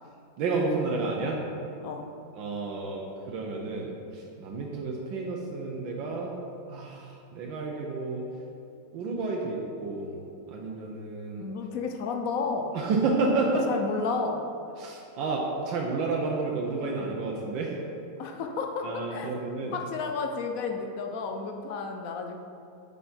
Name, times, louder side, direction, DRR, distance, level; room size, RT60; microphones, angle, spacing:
voice 1, 0.4-1.5 2.3-6.4 6.7-8.3 8.9-10.2 10.5-11.5 12.7-13.6 14.8-17.7 18.8-19.7, right 3 dB, 80° right, -1 dB, 1.5 m, -30 dB
voice 2, 11.4-12.7 13.5-14.5 18.2-19.4 19.7-22.4, left 4 dB, 70° left, 3 dB, 0.8 m, -32 dB
8.4 x 5.8 x 4.3 m, 2.6 s
omnidirectional pair, 2.1 m